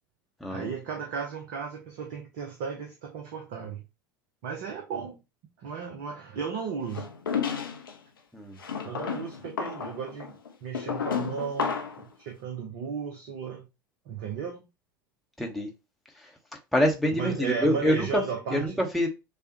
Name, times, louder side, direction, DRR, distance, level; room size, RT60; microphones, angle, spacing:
voice 1, 0.5-3.8 4.4-5.2 5.6-7.1 8.8-10.3 10.6-13.6 14.1-14.6 17.1-18.8, right 6 dB, 55° right, 1.0 m, -35 dB
sound 1, 6.9-7.9 8.6-12.1, left 6 dB, 70° left, 0.8 m, -32 dB
voice 2, 15.4-15.7 16.7-18.2 18.5-19.1, equal, ahead, 1.0 m, -25 dB
6.6 x 2.4 x 2.9 m
figure-of-eight pair, 80°, 12 cm